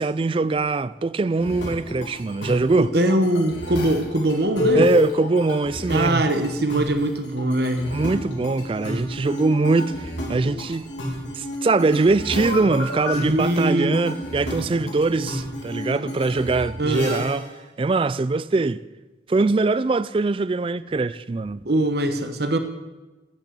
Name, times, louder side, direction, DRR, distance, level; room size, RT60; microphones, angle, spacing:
voice 1, 0.0-2.9 4.7-6.2 7.9-10.9 11.3-17.5 17.8-18.8 19.3-21.6, right 3 dB, 30° right, 0.3 m, -22 dB
sound 1, 1.4-17.5, left 2 dB, 80° left, 3.1 m, -30 dB
voice 2, 2.8-4.9 5.9-7.9 13.2-14.0 16.8-17.2 21.6-22.6, right 1 dB, 60° right, 1.1 m, -22 dB
13.0 x 6.7 x 8.3 m
head